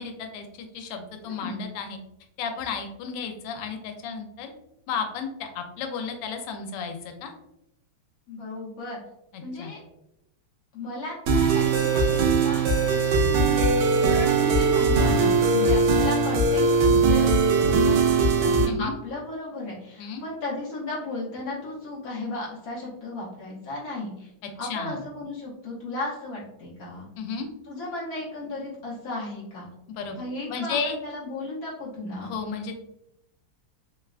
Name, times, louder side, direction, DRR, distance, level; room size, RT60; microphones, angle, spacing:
voice 1, 0.0-2.0 2.4-4.5 4.9-7.3 9.3-9.7 18.7-19.0 20.0-20.2 24.7-25.0 27.2-27.5 30.0-30.2 30.5-31.0 32.2-32.8, left 5 dB, 90° left, 5 dB, 1.5 m, -33 dB
voice 2, 1.2-1.6 8.3-9.0 9.4-9.8 10.7-12.6 12.9-13.7 14.0-24.3 24.6-27.1 27.7-29.7 30.2-32.3, left 2 dB, 65° left, -6 dB, 0.9 m, -35 dB
sound 1, 11.3-18.7, right 4 dB, 75° right, 1.3 m, -20 dB
3.8 x 2.2 x 2.3 m, 0.85 s
omnidirectional pair, 2.4 m